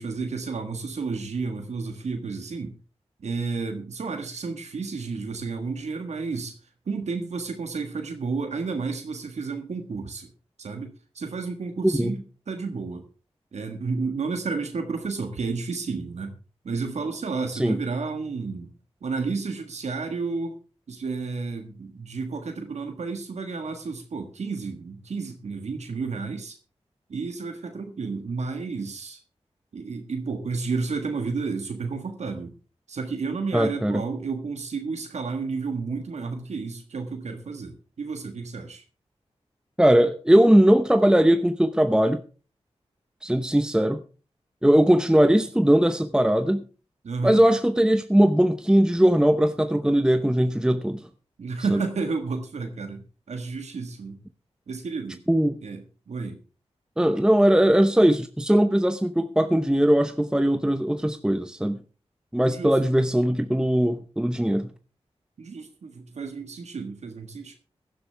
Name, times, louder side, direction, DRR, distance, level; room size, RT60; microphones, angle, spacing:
voice 1, 0.0-2.7 3.2-6.6 6.9-10.3 10.6-13.0 13.5-16.3 16.6-18.7 19.0-20.6 20.9-26.6 27.1-29.2 29.7-32.5 32.9-38.8 47.0-47.4 51.4-53.0 53.3-54.2 54.7-55.2 55.6-56.4 62.5-62.8 65.4-67.5, right 4 dB, 80° right, 5 dB, 1.6 m, -31 dB
voice 2, 11.8-12.1 17.5-17.8 33.5-34.0 39.8-42.2 43.2-44.0 44.6-46.6 47.2-51.0 51.7-51.8 55.3-55.5 57.0-61.8 62.3-64.7, right 1 dB, 5° right, 9 dB, 0.8 m, -20 dB
17.5 x 11.0 x 3.4 m, 0.35 s
cardioid pair, 55°, 11 cm